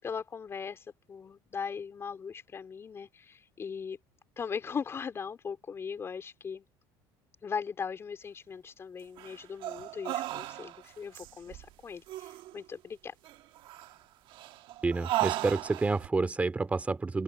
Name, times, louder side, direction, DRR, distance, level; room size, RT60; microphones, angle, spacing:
voice 1, 0.0-4.0 4.4-6.6 7.4-13.1, left 6 dB, 30° left, 4.2 m, -39 dB
sound 1, 9.2-10.9 11.1-11.7 12.1-12.6 13.2-14.0 14.3-16.1, right 15 dB, 60° right, 1.4 m, -36 dB
voice 2, 14.8-17.2, right 3 dB, 15° right, 2.6 m, -29 dB
open air
cardioid pair, 130°, 9 cm